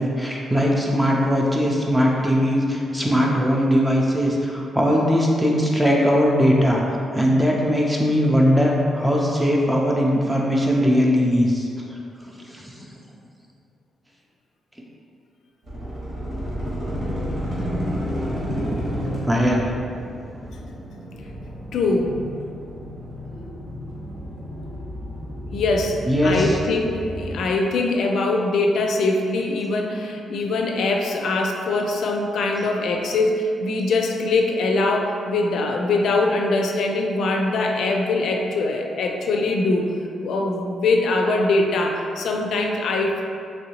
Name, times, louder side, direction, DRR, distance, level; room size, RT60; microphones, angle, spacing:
voice 1, 0.0-11.9 12.2-12.7 19.2-19.7 26.1-26.6, equal, 5° right, -2 dB, 0.4 m, -20 dB
sound 1, 15.6-27.4, equal, 50° right, 1.1 m, -31 dB
voice 2, 21.7-22.2 25.5-39.9 40.2-43.2, left 2 dB, 75° left, 2 dB, 0.3 m, -22 dB
3.1 x 2.7 x 2.8 m, 2.4 s
cardioid pair, 130°, 0 cm